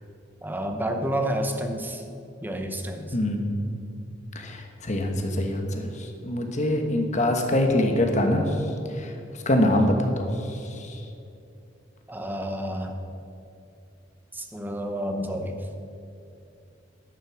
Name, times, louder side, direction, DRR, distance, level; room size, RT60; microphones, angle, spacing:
voice 1, 0.4-2.0 2.4-3.1 12.1-13.0 14.3-15.5, right 1 dB, 10° right, 4 dB, 0.9 m, -29 dB
voice 2, 3.1-3.5 4.3-9.1 9.4-11.0, left 1 dB, 40° left, 4 dB, 1.2 m, -24 dB
11.5 x 6.4 x 6.1 m, 2.6 s
head